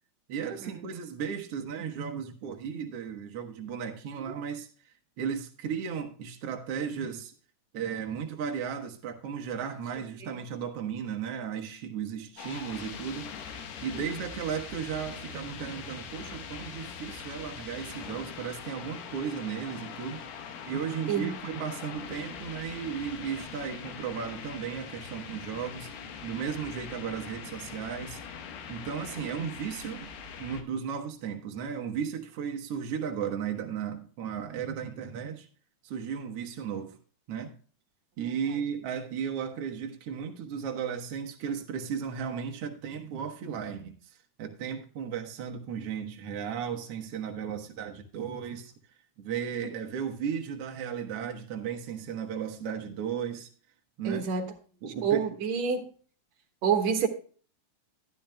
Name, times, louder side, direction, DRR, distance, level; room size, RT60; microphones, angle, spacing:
voice 1, 0.3-7.3 7.7-20.2 20.7-25.9 26.2-28.2 28.7-30.1 30.4-35.5 35.8-37.0 37.3-37.5 38.2-48.7 49.2-53.5 54.0-54.2 54.8-55.2, right 7 dB, 80° right, 1.3 m, -35 dB
sound 1, 12.4-30.6, left 7 dB, 80° left, 3.3 m, -42 dB
voice 2, 54.0-54.5 55.0-55.9 56.6-57.1, right 7 dB, 60° right, 2.1 m, -27 dB
12.0 x 12.0 x 2.2 m
omnidirectional pair, 4.5 m